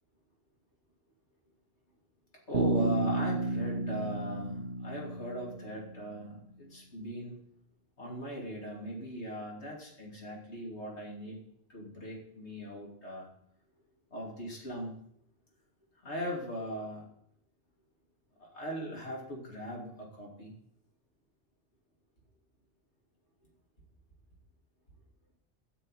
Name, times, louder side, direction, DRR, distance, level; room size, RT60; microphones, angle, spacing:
voice 1, 2.5-7.4 8.0-11.4 11.7-13.3 14.1-14.9 16.0-17.1 18.4-20.5, equal, 75° left, -2 dB, 3.2 m, -39 dB
Bass guitar, 2.5-6.2, right 3 dB, 50° right, 0.9 m, -32 dB
12.5 x 5.5 x 9.1 m, 0.73 s
omnidirectional pair, 1.2 m